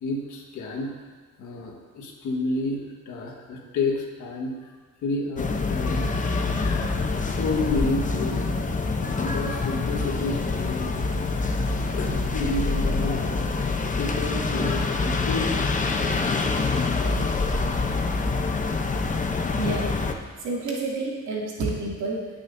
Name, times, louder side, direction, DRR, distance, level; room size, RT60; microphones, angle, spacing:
voice 1, 0.0-1.1 1.4-17.9, left 2 dB, 80° left, -1 dB, 1.6 m, -32 dB
sound 1, 5.4-20.1, left 3 dB, 25° left, 0.8 m, -26 dB
voice 2, 19.6-20.0 20.4-22.3, right 2 dB, 75° right, -4 dB, 2.6 m, -29 dB
16.5 x 6.2 x 2.7 m, 1.4 s
cardioid pair, 90°, 30 cm